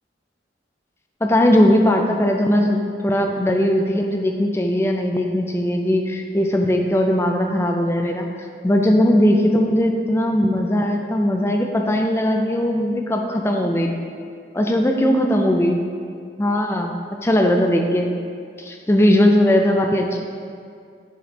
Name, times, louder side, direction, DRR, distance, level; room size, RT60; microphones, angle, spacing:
voice 1, 1.2-8.3 8.6-13.9 14.5-15.9 16.4-18.1 18.6-20.2, left 1 dB, 15° left, 3 dB, 0.4 m, -19 dB
7.7 x 3.1 x 4.9 m, 2.3 s
head